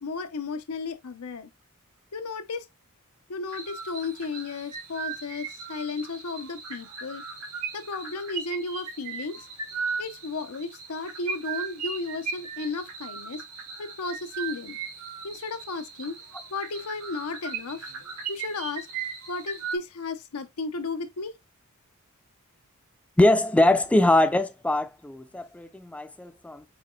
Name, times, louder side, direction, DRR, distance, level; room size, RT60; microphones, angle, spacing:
voice 1, 0.0-1.5 2.1-2.7 3.3-7.2 7.7-9.4 10.0-13.4 13.8-14.8 15.2-16.2 16.5-17.9 18.3-18.9 19.3-21.3, left 3 dB, 90° left, 0.7 m, -34 dB
sound 1, 3.5-19.8, right 6 dB, 80° right, 1.4 m, -37 dB
voice 2, 23.2-26.6, left 1 dB, 5° left, 0.3 m, -22 dB
5.2 x 3.8 x 2.3 m
head